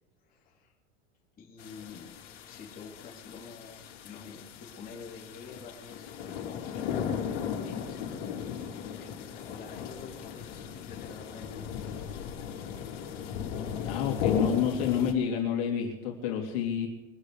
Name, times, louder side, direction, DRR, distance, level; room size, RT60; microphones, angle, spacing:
voice 1, 0.2-0.7 1.4-2.1 2.4-12.0, left 5 dB, 25° left, -4 dB, 3.3 m, -48 dB
sound 1, 1.6-15.1, left 7 dB, 75° left, 3.3 m, -36 dB
voice 2, 13.8-16.9, left 8 dB, 55° left, 0 dB, 3.5 m, -29 dB
24.0 x 8.0 x 5.0 m, 0.93 s
supercardioid pair, 135°, 36 cm